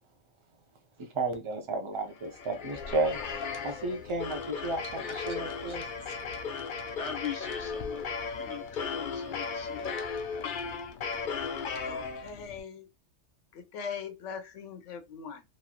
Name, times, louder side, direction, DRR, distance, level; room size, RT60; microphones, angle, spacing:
voice 1, 1.0-3.2 3.6-6.2, right 2 dB, 40° right, 0.4 m, -33 dB
sound 1, 2.1-12.6, left 5 dB, 55° left, 0.6 m, -36 dB
voice 2, 7.0-8.1 8.3-10.0 10.3-10.8, left 7 dB, 30° left, 0.9 m, -41 dB
voice 3, 11.8-12.9 13.5-15.4, left 6 dB, 80° left, 1.0 m, -41 dB
3.0 x 2.5 x 2.2 m
omnidirectional pair, 1.3 m